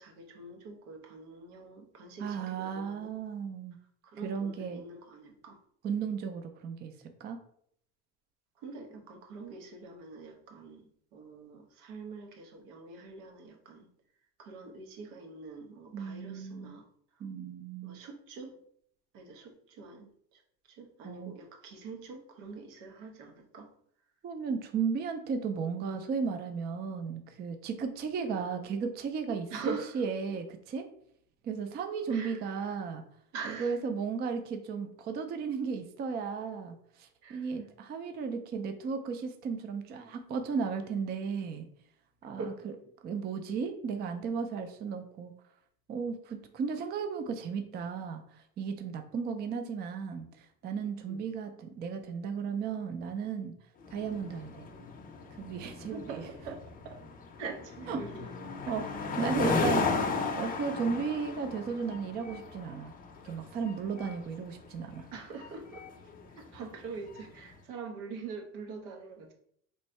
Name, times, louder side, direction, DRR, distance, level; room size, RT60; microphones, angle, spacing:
voice 1, 0.0-3.1 4.0-5.6 8.6-13.9 14.4-17.3 17.8-18.6 19.1-23.7 29.5-30.0 32.1-32.8 33.3-33.8 37.2-37.7 42.4-42.7 51.0-51.3 55.9-56.9 57.4-58.3 59.4-60.2 64.0-64.2 65.1-69.3, right 4 dB, 85° right, 3 dB, 1.1 m, -44 dB
voice 2, 2.2-3.8 4.2-4.8 5.8-6.9 7.2-7.4 15.9-16.7 17.2-18.0 21.0-21.3 24.2-30.9 31.4-33.0 33.5-41.7 42.2-42.5 43.0-45.3 45.9-53.5 53.9-54.7 55.4-56.2 57.9-58.0 58.7-59.8 60.3-62.9 63.2-65.1, right 6 dB, 25° right, 6 dB, 0.3 m, -35 dB
sound 1, 53.8-67.4, left 4 dB, 20° left, 0.6 m, -36 dB
3.1 x 2.6 x 4.3 m, 0.66 s
cardioid pair, 130°, 39 cm